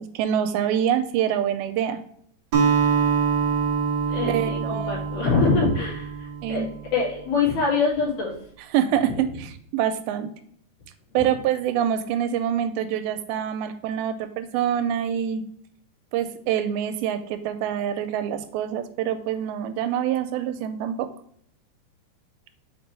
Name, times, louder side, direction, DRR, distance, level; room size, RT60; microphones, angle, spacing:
voice 1, 0.0-2.0 4.3-5.0 6.4-6.7 8.7-10.3 11.1-15.4 16.1-21.1, right 9 dB, 85° right, 9 dB, 2.4 m, -25 dB
Acoustic guitar, 2.5-7.0, right 6 dB, 65° right, 1.0 m, -25 dB
voice 2, 4.1-6.1 6.5-6.6 6.9-8.3, left 4 dB, 80° left, -5 dB, 4.3 m, -24 dB
7.1 x 4.3 x 3.2 m, 0.64 s
omnidirectional pair, 4.3 m